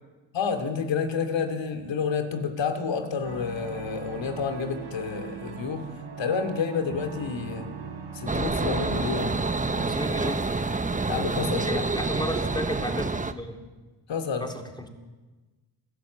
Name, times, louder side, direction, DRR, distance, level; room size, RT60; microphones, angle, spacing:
voice 1, 0.3-5.8 6.2-7.7 8.1-9.4 11.0-11.8 14.1-14.5, left 5 dB, 60° left, 6 dB, 2.9 m, -29 dB
sound 1, 3.2-10.0, right 6 dB, 60° right, 5.5 m, -40 dB
sound 2, 8.3-13.3, right 3 dB, 15° right, 1.1 m, -27 dB
voice 2, 9.8-10.5 11.7-13.6 14.4-14.9, left 1 dB, 10° left, 2 dB, 3.4 m, -33 dB
29.0 x 11.0 x 8.1 m, 1.3 s
cardioid pair, 85°, 49 cm